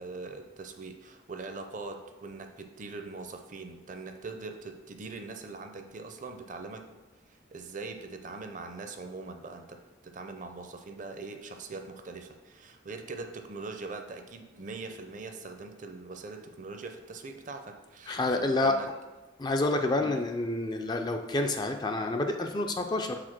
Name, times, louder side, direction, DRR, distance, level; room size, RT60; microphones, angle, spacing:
voice 1, 0.0-6.9 7.3-18.9 20.0-20.2, right 3 dB, 40° right, 6 dB, 0.5 m, -42 dB
voice 2, 18.1-18.8 19.4-23.2, left 2 dB, 20° left, 4 dB, 0.3 m, -28 dB
4.9 x 4.1 x 5.9 m, 1.2 s
head